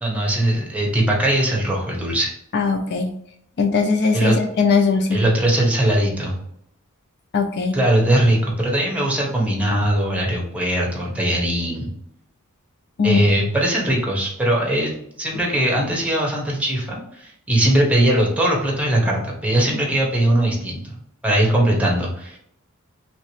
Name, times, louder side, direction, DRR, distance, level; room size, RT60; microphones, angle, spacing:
voice 1, 0.0-2.3 4.1-4.3 5.1-6.3 7.7-11.9 13.0-14.9 15.2-20.8 21.2-22.4, right 1 dB, 5° right, -2 dB, 0.9 m, -20 dB
voice 2, 2.5-3.1 3.6-5.2 7.3-7.8 13.0-13.3 15.3-15.4, left 4 dB, 50° left, 6 dB, 0.4 m, -20 dB
3.1 x 2.8 x 3.0 m, 0.74 s
head